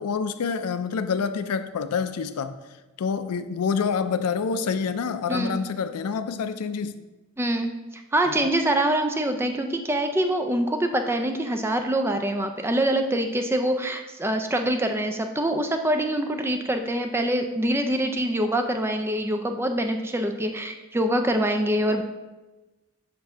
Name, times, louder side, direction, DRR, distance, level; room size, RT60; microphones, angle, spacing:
voice 1, 0.0-2.6 3.0-7.0 8.3-8.5, left 6 dB, 90° left, 11 dB, 0.4 m, -27 dB
voice 2, 7.4-22.0, right 1 dB, 10° right, 5 dB, 0.4 m, -25 dB
6.8 x 2.7 x 5.5 m, 1.1 s
head